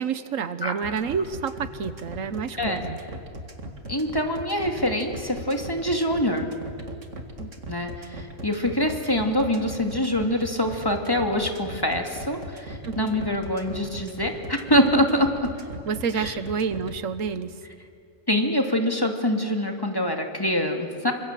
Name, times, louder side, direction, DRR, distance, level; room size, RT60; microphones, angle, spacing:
voice 1, 0.0-3.0 7.4-7.5 12.8-13.2 15.9-17.5, right 6 dB, 85° right, 12 dB, 1.4 m, -29 dB
sound 1, 0.8-16.9, right 1 dB, 70° right, 2.4 m, -38 dB
voice 2, 3.9-6.5 7.7-15.5 16.2-16.3 18.3-21.1, left 1 dB, 15° left, 3 dB, 2.6 m, -25 dB
28.5 x 26.0 x 7.6 m, 2.5 s
omnidirectional pair, 1.3 m